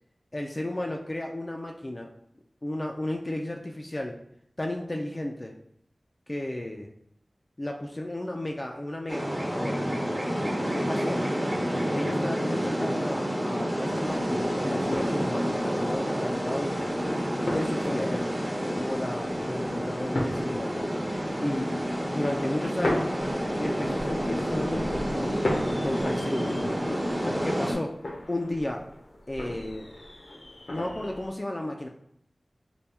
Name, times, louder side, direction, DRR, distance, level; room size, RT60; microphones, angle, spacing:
voice 1, 0.3-2.1 2.6-4.2 4.6-5.5 6.3-6.9 7.6-10.0 10.7-11.2 11.9-16.7 17.5-18.3 18.7-20.8 21.4-21.7 22.0-23.2 23.6-25.6 25.8-26.7 27.4-28.0 28.3-28.9 29.3-29.9 30.7-31.9, left 1 dB, 35° left, 1 dB, 0.4 m, -33 dB
sound 1, 9.1-27.7, equal, 25° right, 0.9 m, -29 dB
sound 2, 13.9-31.3, left 1 dB, 75° left, 0.6 m, -38 dB
4.2 x 2.2 x 3.3 m, 0.70 s
wide cardioid pair, 65°, 0 cm